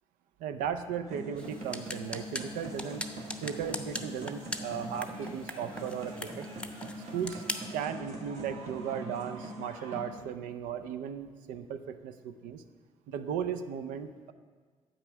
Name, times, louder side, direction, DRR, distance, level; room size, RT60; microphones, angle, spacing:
voice 1, 0.4-3.1 3.4-6.5 7.1-7.4 7.7-12.6 13.1-14.3, right 8 dB, 80° right, 10 dB, 0.5 m, -36 dB
sound 1, 1.1-10.0, right 1 dB, 55° right, 1.9 m, -42 dB
sound 2, 1.4-7.8, left 1 dB, 10° left, 0.7 m, -41 dB
8.3 x 5.9 x 4.6 m, 1.5 s
supercardioid pair, 55°, 14 cm